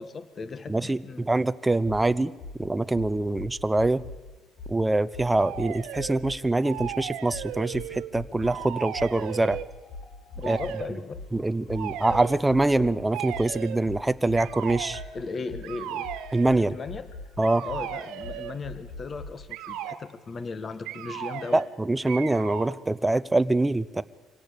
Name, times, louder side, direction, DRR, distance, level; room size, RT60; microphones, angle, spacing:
voice 1, 0.0-1.3 10.3-11.2 15.1-16.1 16.7-17.1 17.6-21.6, left 4 dB, 30° left, 11 dB, 1.6 m, -37 dB
voice 2, 0.7-2.3 2.6-4.0 4.7-9.6 10.5-10.6 11.3-15.0 16.3-16.8 17.4-17.6 21.5-24.0, right 2 dB, 10° right, 13 dB, 0.7 m, -24 dB
sound 1, 2.4-2.6 2.9-4.2 4.6-4.8 5.1-6.4 6.8-6.9 7.3-8.6 8.9-12.9 13.3-19.3, left 3 dB, 70° left, 3.5 m, -41 dB
sound 2, 5.3-6.2 6.6-8.1 8.4-9.7 10.4-10.9 11.7-12.4 13.1-13.8 14.3-15.1 15.6-16.6 17.4-18.6 19.5-20.0 20.8-21.7 22.1-22.7, right 11 dB, 90° right, 1.5 m, -36 dB
25.0 x 17.0 x 8.5 m, 1.2 s
cardioid pair, 125°, 0 cm